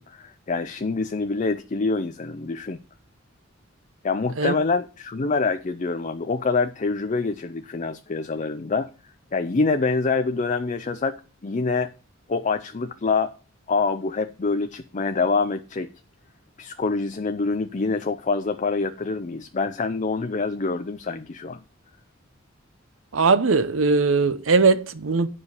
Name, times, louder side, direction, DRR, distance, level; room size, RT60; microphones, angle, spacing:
voice 1, 0.0-2.8 4.0-8.9 9.3-11.9 12.3-13.3 13.7-15.9 16.6-21.6, left 4 dB, 40° left, 0.5 m, -26 dB
voice 2, 23.1-25.3, right 4 dB, 75° right, 0.8 m, -20 dB
9.7 x 5.0 x 7.0 m
head